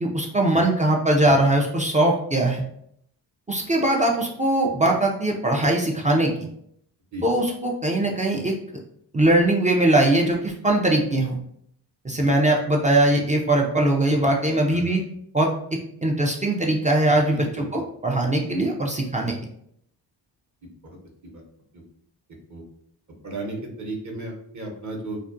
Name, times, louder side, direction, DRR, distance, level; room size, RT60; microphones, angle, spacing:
voice 1, 0.0-2.6 3.5-6.3 7.2-8.6 9.1-11.3 12.0-15.0 15.3-15.5 16.0-19.4, right 1 dB, 20° right, 0 dB, 0.3 m, -21 dB
voice 2, 14.7-15.0 17.3-17.4 20.8-21.0 21.3-21.4 22.5-22.6 23.2-25.2, right 2 dB, 40° right, 1 dB, 0.8 m, -34 dB
2.4 x 2.1 x 2.5 m, 0.69 s
cardioid pair, 60°, 45 cm